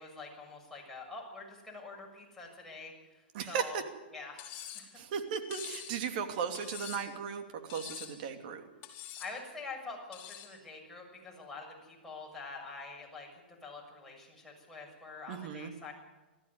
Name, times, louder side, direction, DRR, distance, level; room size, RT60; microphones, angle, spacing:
voice 1, 0.0-3.8 4.1-5.0 9.2-15.9, left 4 dB, 5° left, -3 dB, 6.8 m, -46 dB
voice 2, 3.3-3.8 4.9-7.4 7.7-8.6 15.3-15.7, right 7 dB, 55° right, 5 dB, 2.8 m, -36 dB
Cutlery silverware, 4.4-4.9 5.5-5.9 6.5-7.2 7.7-8.2 8.8-9.3 10.1-10.5, left 11 dB, 35° left, 4.7 m, -45 dB
19.5 x 14.0 x 9.7 m, 1.1 s
hypercardioid pair, 130°, 6 cm